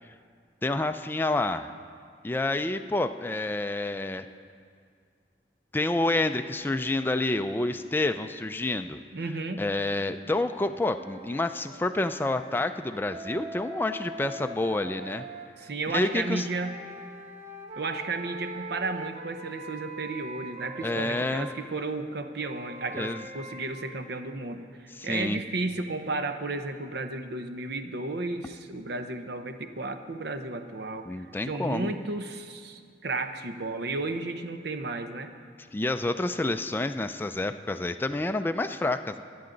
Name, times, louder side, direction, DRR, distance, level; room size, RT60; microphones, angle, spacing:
voice 1, 0.6-1.7 2.2-4.2 5.7-9.0 9.6-15.2 15.9-16.5 20.8-21.5 22.9-23.2 25.0-25.4 31.1-31.9 35.7-39.2, left 2 dB, 10° left, 8 dB, 0.4 m, -28 dB
voice 2, 9.1-9.6 15.6-16.8 17.8-35.3, right 3 dB, 65° right, 8 dB, 0.8 m, -33 dB
sound 1, 10.9-15.5 16.2-21.6 22.4-23.6, right 1 dB, 40° right, 1.0 m, -42 dB
24.0 x 8.6 x 3.9 m, 2.2 s
head